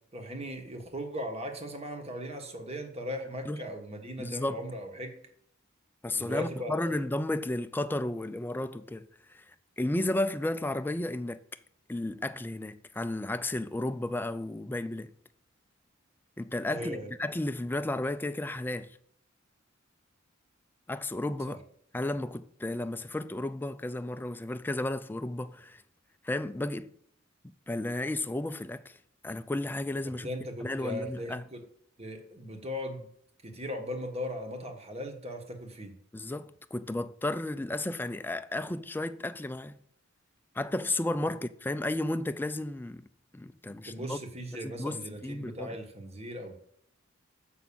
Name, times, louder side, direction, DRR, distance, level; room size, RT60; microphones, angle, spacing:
voice 1, 0.1-5.2 6.1-7.0 16.7-17.1 21.5-21.6 30.2-31.6 32.0-33.1 33.4-36.0 43.8-46.6, equal, 30° right, 1.4 m, -38 dB
voice 2, 4.2-4.6 6.0-11.4 11.9-15.1 16.4-19.0 20.9-21.6 21.9-25.8 26.2-26.9 27.7-29.0 29.2-30.3 30.6-31.4 36.1-39.8 40.6-43.0 43.3-44.2 44.6-45.8, left 1 dB, 10° left, 0.3 m, -33 dB
7.2 x 5.9 x 6.9 m
head